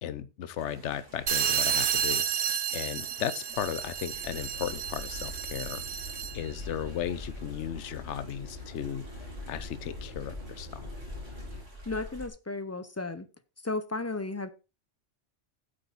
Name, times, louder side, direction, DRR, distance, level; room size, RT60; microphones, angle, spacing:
voice 1, 0.0-2.5 2.7-5.8 6.3-9.0 9.5-10.9, left 9 dB, 70° left, 1.0 m, -35 dB
sound 1, 0.6-12.3, left 1 dB, 80° right, 3.5 m, -47 dB
sound 2, 1.3-6.5, right 8 dB, 55° right, 0.8 m, -31 dB
sound 3, 4.1-11.6, left 2 dB, 40° left, 4.2 m, -44 dB
voice 2, 11.9-13.3 13.6-14.5, left 3 dB, 25° left, 0.3 m, -34 dB
8.6 x 7.8 x 4.0 m
omnidirectional pair, 1.2 m